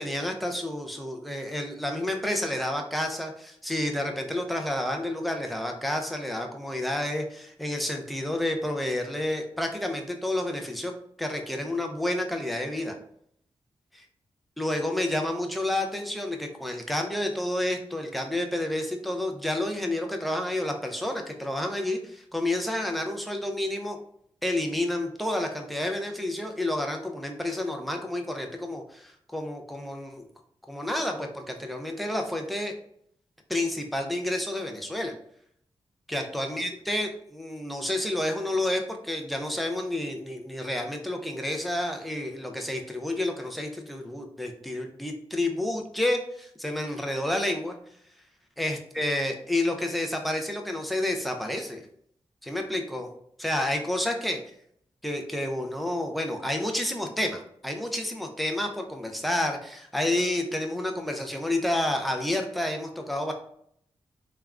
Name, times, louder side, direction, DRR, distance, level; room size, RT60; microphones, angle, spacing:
voice 1, 0.0-10.9 11.2-13.0 14.6-24.0 24.4-30.3 30.7-32.7 33.5-35.1 36.1-47.8 48.6-51.8 52.4-53.1 53.4-54.4 55.0-63.3, left 1 dB, ahead, 3 dB, 0.5 m, -30 dB
3.3 x 2.3 x 2.3 m, 0.68 s
cardioid pair, 70°, 11 cm